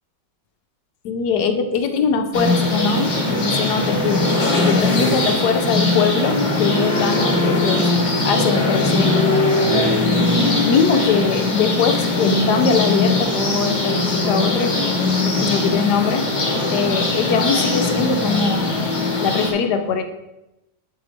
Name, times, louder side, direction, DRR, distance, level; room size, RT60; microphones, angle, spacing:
voice 1, 1.0-4.3 4.5-7.9 8.2-9.2 9.7-14.7 15.4-16.3 16.7-18.7 19.2-20.0, left 5 dB, 70° left, 6 dB, 1.1 m, -22 dB
sound 1, 2.3-19.5, left 2 dB, 40° left, 1.5 m, -20 dB
8.7 x 4.7 x 4.1 m, 0.95 s
omnidirectional pair, 2.0 m